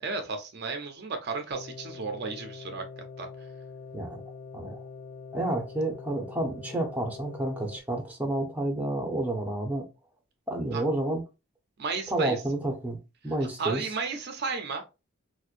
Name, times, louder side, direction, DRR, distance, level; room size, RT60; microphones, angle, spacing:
voice 1, 0.0-2.8 3.2-3.3 10.7-10.8 11.8-12.4 13.6-14.8, right 4 dB, 50° right, 0.5 m, -33 dB
sound 1, 1.5-7.8, left 5 dB, 30° left, 0.3 m, -44 dB
voice 2, 5.3-9.9 10.5-11.2 12.1-13.0 13.2-13.9, right 1 dB, 5° right, 0.6 m, -30 dB
4.3 x 2.1 x 2.4 m
head